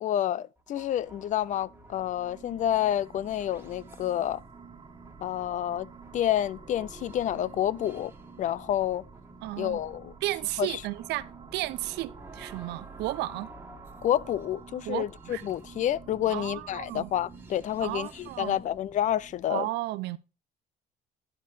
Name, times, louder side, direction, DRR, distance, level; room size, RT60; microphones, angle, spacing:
voice 1, 0.0-4.4 5.2-8.1 8.4-9.0 9.6-10.1 10.6-10.8 14.0-19.7, left 11 dB, 50° left, 0.4 m, -29 dB
sound 1, 0.6-19.4, right 3 dB, 10° right, 1.6 m, -49 dB
sound 2, 1.8-19.0, right 5 dB, 25° right, 1.5 m, -56 dB
voice 2, 9.4-9.8 10.2-13.5 14.9-15.4 16.3-17.1 17.8-18.6 19.5-20.2, right 17 dB, 85° right, 0.6 m, -33 dB
11.0 x 4.6 x 4.8 m
cardioid pair, 110°, 17 cm